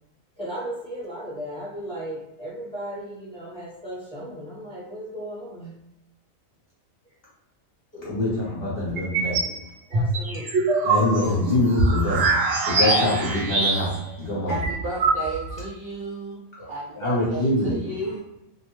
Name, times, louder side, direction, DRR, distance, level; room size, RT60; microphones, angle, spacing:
voice 1, 0.4-5.8 8.1-8.4 8.7-9.6 9.9-10.7, right 1 dB, 5° left, -8 dB, 0.9 m, -36 dB
voice 2, 7.9-9.4 10.8-12.3 12.7-13.9 14.2-14.6 16.6-16.7 16.9-17.7, left 1 dB, 50° left, -6 dB, 0.9 m, -24 dB
sound 1, 9.0-9.5 9.9-14.1 14.4-14.5 14.6-15.6, right 3 dB, 65° right, 0.8 m, -23 dB
voice 3, 14.5-16.4 16.7-18.2, right 2 dB, 80° right, -5 dB, 0.4 m, -33 dB
2.6 x 2.1 x 3.0 m, 0.86 s
omnidirectional pair, 1.5 m